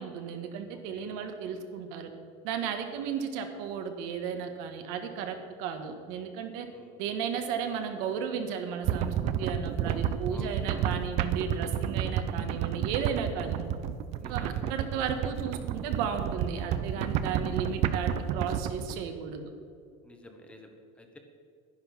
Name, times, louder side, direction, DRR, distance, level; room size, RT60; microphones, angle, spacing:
voice 1, 0.0-2.1 2.4-6.7 7.0-13.7 14.3-19.5, right 7 dB, 75° right, 6 dB, 1.5 m, -34 dB
sound 1, 8.8-18.9, right 9 dB, 50° right, 0.6 m, -31 dB
voice 2, 10.3-10.9 14.2-14.9 17.4-17.7 20.0-21.2, left 1 dB, 10° left, 4 dB, 1.1 m, -52 dB
10.5 x 10.5 x 5.9 m, 2.2 s
cardioid pair, 160°, 14 cm